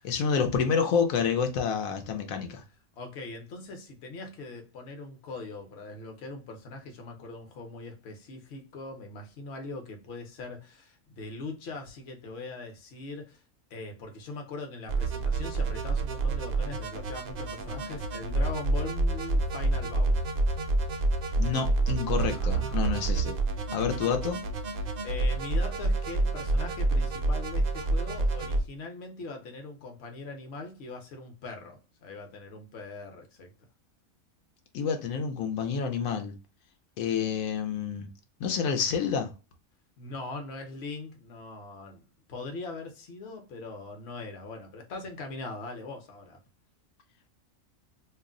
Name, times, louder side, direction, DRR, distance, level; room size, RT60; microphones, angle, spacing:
voice 1, 0.0-2.6 21.4-23.4 23.7-24.4 34.7-36.3 37.0-38.1 38.4-39.3, left 6 dB, 90° left, 1.0 m, -28 dB
voice 2, 3.0-13.4 13.7-20.2 22.3-23.1 24.8-33.5 40.0-42.0 42.3-46.4, left 3 dB, 60° left, 0.9 m, -41 dB
sound 1, 14.9-28.6, right 2 dB, 65° right, 0.5 m, -28 dB
2.6 x 2.1 x 3.6 m
omnidirectional pair, 1.4 m